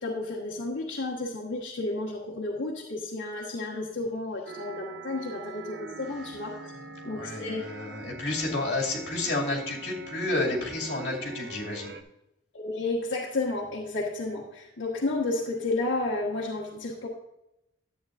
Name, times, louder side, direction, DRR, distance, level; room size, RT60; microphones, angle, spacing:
voice 1, 0.0-6.7 7.0-7.6 12.5-17.1, left 2 dB, 85° left, -4 dB, 1.5 m, -32 dB
sound 1, 4.5-12.0, right 3 dB, 60° right, 0.7 m, -43 dB
voice 2, 7.1-12.0, left 2 dB, 60° left, -2 dB, 2.6 m, -30 dB
11.0 x 8.6 x 2.5 m, 0.86 s
head